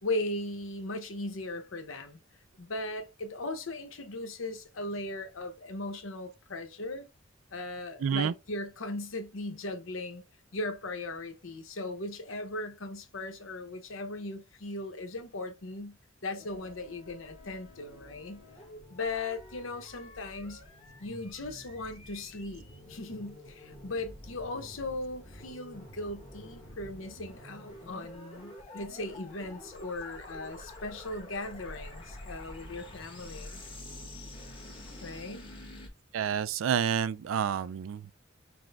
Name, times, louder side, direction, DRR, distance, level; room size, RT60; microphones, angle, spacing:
voice 1, 0.0-2.2 2.6-7.1 7.5-10.2 10.5-16.0 16.2-18.4 18.9-20.6 21.0-33.6 35.0-35.4, left 2 dB, 85° left, 0.9 m, -38 dB
voice 2, 8.0-8.3 36.1-38.2, right 8 dB, 80° right, 0.3 m, -29 dB
sound 1, 16.4-35.9, left 1 dB, 25° left, 1.2 m, -48 dB
6.0 x 2.1 x 3.4 m
head